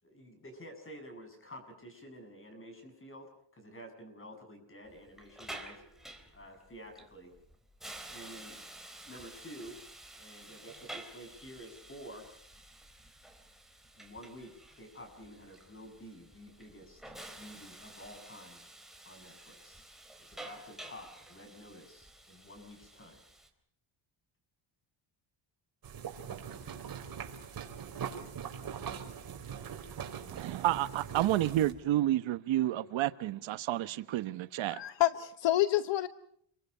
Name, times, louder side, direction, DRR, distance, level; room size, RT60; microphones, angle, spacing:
voice 1, 0.0-7.3 8.1-8.6 9.0-9.8 10.1-12.3 13.9-18.6 19.0-19.9 20.3-23.2, equal, 25° left, 7.3 m, -50 dB
Hiss, 4.9-23.5, right 1 dB, ahead, 3.8 m, -51 dB
sound 1, 25.8-31.7, right 7 dB, 45° right, 4.9 m, -42 dB
voice 2, 30.3-34.8, right 13 dB, 70° right, 1.1 m, -30 dB
voice 3, 34.7-36.1, left 15 dB, 65° left, 1.1 m, -28 dB
29.0 x 23.5 x 5.6 m
cardioid pair, 120°, 48 cm